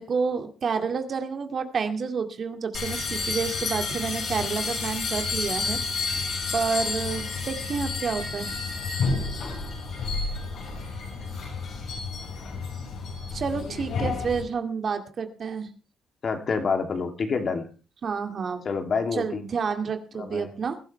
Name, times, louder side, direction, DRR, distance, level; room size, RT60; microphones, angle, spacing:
voice 1, 0.0-6.2 6.5-8.5 13.3-15.7 18.0-18.6 19.1-20.8, right 5 dB, 50° right, 6 dB, 2.3 m, -29 dB
sound 1, 2.7-14.4, left 4 dB, 65° left, 5.9 m, -30 dB
voice 2, 16.2-17.7 18.6-19.4 20.2-20.5, left 5 dB, 50° left, 5 dB, 2.8 m, -27 dB
21.0 x 12.0 x 3.4 m, 0.34 s
cardioid pair, 90°, 0 cm